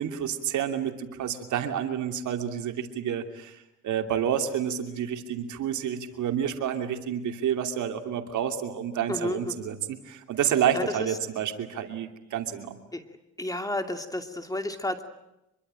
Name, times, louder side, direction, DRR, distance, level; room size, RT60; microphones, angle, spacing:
voice 1, 0.0-12.8, right 9 dB, 75° right, 6 dB, 2.8 m, -29 dB
voice 2, 9.1-9.7 10.7-10.8 12.9-13.0 13.4-15.0, left 1 dB, 10° left, 7 dB, 2.6 m, -31 dB
25.5 x 23.0 x 9.0 m, 0.88 s
cardioid pair, 90°, 30 cm